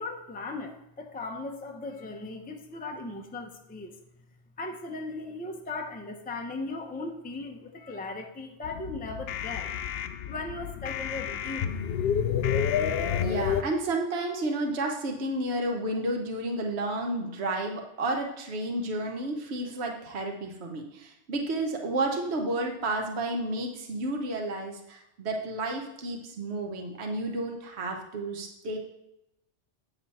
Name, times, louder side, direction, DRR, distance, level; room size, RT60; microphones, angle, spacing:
voice 1, 0.0-3.9 4.6-9.7 10.3-11.7, left 3 dB, 10° left, 3 dB, 0.6 m, -37 dB
sound 1, 8.6-13.6, left 8 dB, 65° left, 0.7 m, -29 dB
voice 2, 13.2-28.8, right 2 dB, 60° right, 2 dB, 1.3 m, -31 dB
8.6 x 6.7 x 4.2 m, 0.87 s
omnidirectional pair, 1.3 m